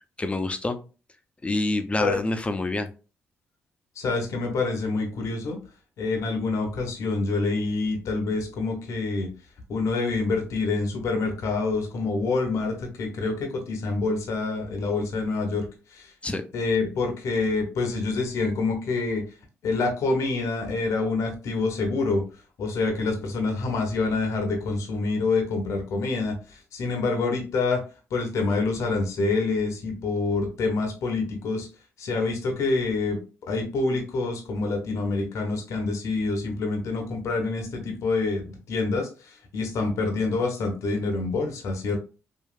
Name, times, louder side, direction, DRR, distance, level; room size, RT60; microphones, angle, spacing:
voice 1, 0.2-0.8 1.4-2.9 16.2-16.4, left 2 dB, 20° left, 8 dB, 0.5 m, -26 dB
voice 2, 4.0-5.6 6.0-9.3 9.7-15.7 15.9-16.1 16.5-19.2 19.6-22.2 22.6-27.8 28.1-31.7 32.0-33.2 33.5-42.0, left 3 dB, 65° left, 3 dB, 0.7 m, -26 dB
3.0 x 2.4 x 2.4 m, 0.34 s
supercardioid pair, 65°, 6 cm